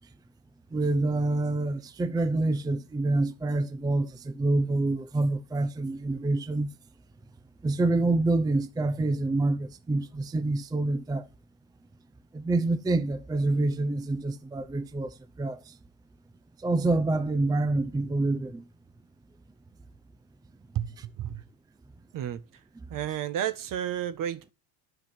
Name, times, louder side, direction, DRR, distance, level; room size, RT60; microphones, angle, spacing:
voice 1, 0.7-6.7 7.6-11.3 12.3-15.7 16.6-18.6, right 2 dB, 10° right, 0.6 m, -27 dB
voice 2, 22.1-22.6 22.9-24.5, right 10 dB, 45° right, 1.6 m, -32 dB
11.0 x 5.8 x 7.5 m
supercardioid pair, 105°, 44 cm